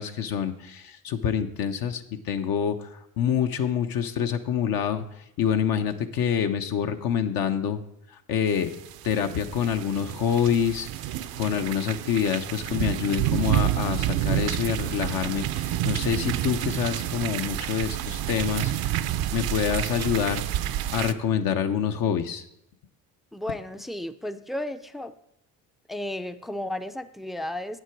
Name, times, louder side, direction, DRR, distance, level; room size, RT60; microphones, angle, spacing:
voice 1, 0.0-5.0 5.4-7.8 8.3-8.7 9.0-10.9 11.3-18.9 19.3-20.4 20.9-22.4, left 8 dB, 65° left, 0.8 m, -26 dB
sound 1, 8.6-21.1, right 13 dB, 70° right, 0.6 m, -29 dB
voice 2, 23.3-25.1 25.9-27.8, left 1 dB, ahead, 0.4 m, -33 dB
8.4 x 8.0 x 4.5 m
supercardioid pair, 80°, 38 cm